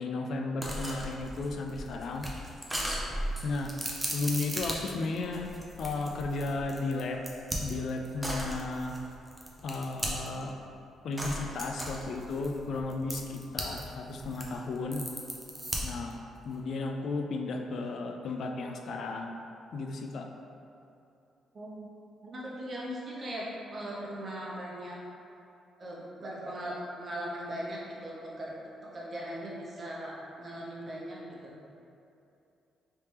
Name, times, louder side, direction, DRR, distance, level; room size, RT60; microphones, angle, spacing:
voice 1, 0.0-2.2 3.4-5.5 5.8-7.2 7.6-9.0 9.6-10.5 11.0-15.0 15.8-16.2 16.5-19.4 19.7-20.3, left 3 dB, 65° left, 3 dB, 0.3 m, -34 dB
sound 1, 0.6-10.5 11.2-13.8 14.1-16.1, equal, 10° right, 0.6 m, -36 dB
voice 2, 22.3-25.0 25.8-31.5, equal, 40° right, -5 dB, 0.8 m, -39 dB
3.2 x 3.2 x 3.0 m, 2.7 s
cardioid pair, 90°, 0 cm